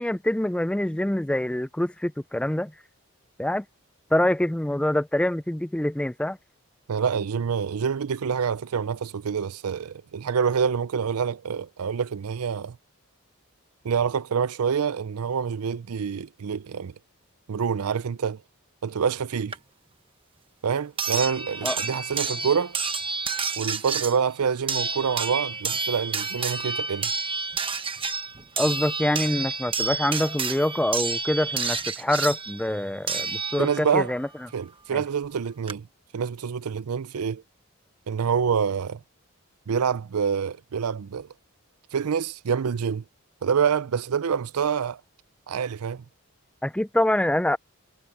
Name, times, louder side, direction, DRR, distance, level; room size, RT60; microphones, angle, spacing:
voice 1, 0.0-2.7 3.4-3.6 4.1-6.4 21.6-21.8 28.6-34.3 34.9-35.0 46.6-47.6, left 1 dB, 5° left, 0.3 m, -25 dB
voice 2, 6.9-12.8 13.8-16.9 17.5-18.4 18.8-19.5 20.6-22.8 23.6-27.1 33.6-34.1 34.5-35.9 36.1-37.4 38.1-39.0 39.7-41.3 41.9-43.0 43.4-45.0 45.5-46.0, right 6 dB, 85° right, 0.5 m, -26 dB
sound 1, 19.5-19.6 21.0-34.0 35.2-35.3 35.7-35.8, right 5 dB, 25° right, 1.2 m, -30 dB
head